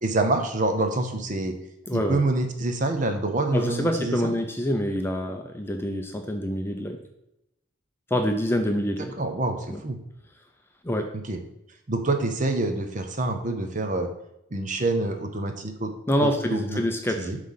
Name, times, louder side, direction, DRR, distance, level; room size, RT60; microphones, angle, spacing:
voice 1, 0.0-1.5 1.9-4.3 9.2-10.0 11.3-11.4 11.9-14.1 14.5-15.9 16.2-16.8 17.2-17.4, right 2 dB, 40° right, 6 dB, 0.7 m, -26 dB
voice 2, 1.9-2.2 3.5-7.0 8.1-9.2 9.7-9.8 10.8-11.1 16.1-17.3, equal, 10° left, 4 dB, 0.5 m, -26 dB
7.5 x 3.3 x 5.7 m, 0.84 s
head